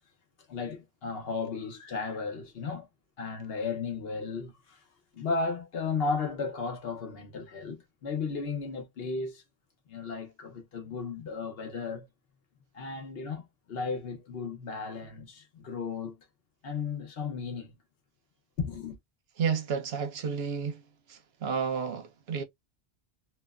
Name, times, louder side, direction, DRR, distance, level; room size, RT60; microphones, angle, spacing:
voice 1, 0.5-2.9 3.2-4.8 5.1-9.4 9.9-12.1 12.7-16.2 16.6-17.7 18.6-19.0, left 4 dB, 65° left, 0.9 m, -35 dB
voice 2, 19.4-20.8 21.1-22.4, right 6 dB, 70° right, 0.9 m, -31 dB
2.8 x 2.1 x 2.3 m
omnidirectional pair, 1.1 m